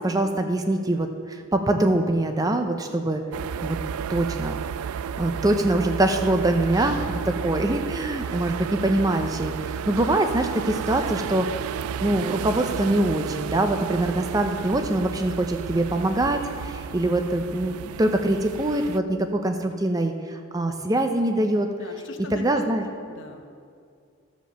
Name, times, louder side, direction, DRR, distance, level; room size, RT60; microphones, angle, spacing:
voice 1, 0.0-3.2 3.6-3.8 4.1-4.6 5.2-11.5 12.0-21.7 22.3-22.9, right 1 dB, 15° right, 6 dB, 0.5 m, -24 dB
sound 1, 3.3-19.0, right 7 dB, 90° right, 0.3 m, -32 dB
voice 2, 21.8-22.7 23.1-23.5, left 1 dB, 60° left, 4 dB, 0.9 m, -40 dB
13.5 x 5.1 x 6.7 m, 2.3 s
head